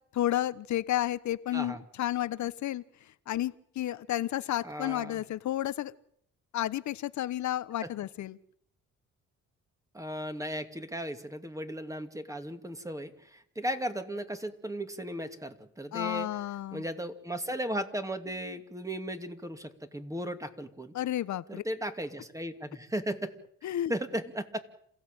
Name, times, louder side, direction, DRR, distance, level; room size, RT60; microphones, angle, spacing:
voice 1, 0.1-2.8 3.3-5.9 6.5-8.4 15.9-16.8 20.9-21.6 23.6-23.9, left 13 dB, 70° left, 1.2 m, -31 dB
voice 2, 1.5-1.8 4.6-5.2 7.8-7.9 9.9-16.4 16.7-20.9 21.5-23.4 23.9-24.6, right 1 dB, 10° right, 2.5 m, -36 dB
28.0 x 16.0 x 9.0 m
cardioid pair, 90°, 30 cm